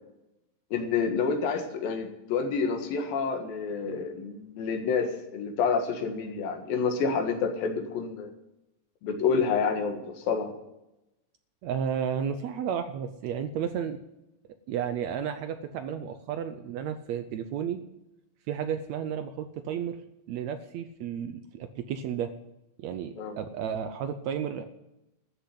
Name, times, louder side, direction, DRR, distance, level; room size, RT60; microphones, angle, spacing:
voice 1, 0.7-8.3 9.0-10.5 23.2-23.4, left 5 dB, 85° left, 5 dB, 3.5 m, -28 dB
voice 2, 11.6-14.0 14.7-17.8 18.5-20.0 20.3-22.3 22.8-24.6, right 8 dB, 80° right, 9 dB, 1.6 m, -32 dB
13.5 x 7.0 x 9.7 m, 0.92 s
omnidirectional pair, 4.0 m